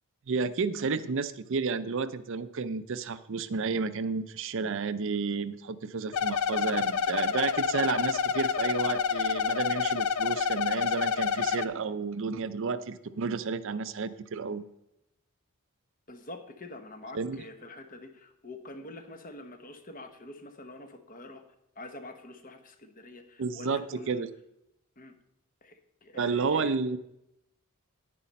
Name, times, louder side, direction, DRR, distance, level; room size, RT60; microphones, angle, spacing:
voice 1, 0.3-14.7 17.1-17.4 23.4-24.3 26.2-27.0, right 4 dB, 60° right, 13 dB, 0.5 m, -31 dB
sound 1, 6.1-11.6, left 6 dB, 80° left, 0.5 m, -28 dB
voice 2, 16.1-21.4 21.8-24.2 25.0-25.1 25.6-26.8, left 2 dB, 40° left, 7 dB, 1.1 m, -46 dB
10.0 x 9.8 x 4.2 m, 0.83 s
head